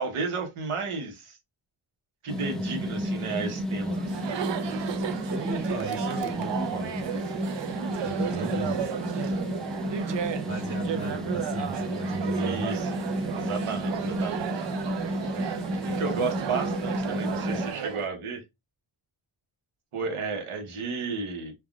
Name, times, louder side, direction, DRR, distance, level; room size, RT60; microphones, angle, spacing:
voice 1, 0.0-1.4 2.2-4.0 8.1-8.7 12.3-12.9 13.3-14.7 15.8-18.4 19.9-21.5, right 4 dB, 80° right, 1.0 m, -33 dB
sound 1, 2.3-17.7, equal, ahead, 0.5 m, -32 dB
Chatter, 3.9-18.1, right 8 dB, 60° right, 0.5 m, -34 dB
voice 2, 5.3-7.0 8.0-8.9 10.4-12.7, right 3 dB, 25° right, 0.8 m, -37 dB
3.4 x 2.3 x 2.3 m
wide cardioid pair, 90°, 50 cm